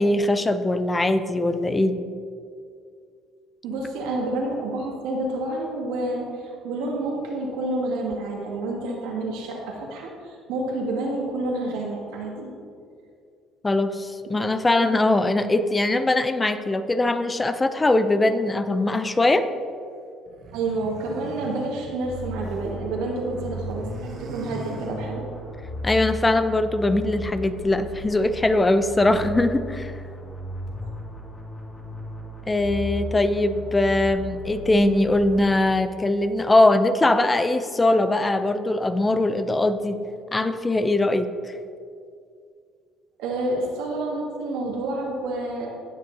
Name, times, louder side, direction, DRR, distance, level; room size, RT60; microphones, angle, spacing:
voice 1, 0.0-1.9 13.6-19.5 25.8-29.9 32.5-40.0 40.3-41.5, left 2 dB, 20° left, 11 dB, 0.5 m, -21 dB
voice 2, 3.6-12.5 14.8-14.9 20.5-25.3 30.8-30.9 43.2-45.7, right 2 dB, 90° right, -2 dB, 2.0 m, -29 dB
sound 1, 20.3-22.7 23.0-25.5, right 4 dB, 60° right, 1.1 m, -41 dB
sound 2, 22.0-36.1, left 1 dB, 40° left, 2.1 m, -36 dB
17.5 x 6.6 x 2.8 m, 2.3 s
cardioid pair, 95°, 0 cm